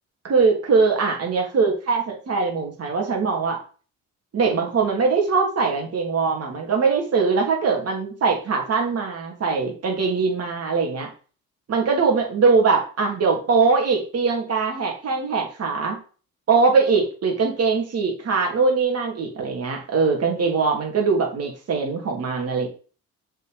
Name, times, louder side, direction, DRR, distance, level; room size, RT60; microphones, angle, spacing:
voice 1, 0.2-3.6 4.3-11.1 11.7-16.0 16.5-22.7, right 4 dB, 55° right, 1 dB, 2.9 m, -21 dB
6.7 x 5.0 x 5.2 m, 0.38 s
cardioid pair, 90°, 30 cm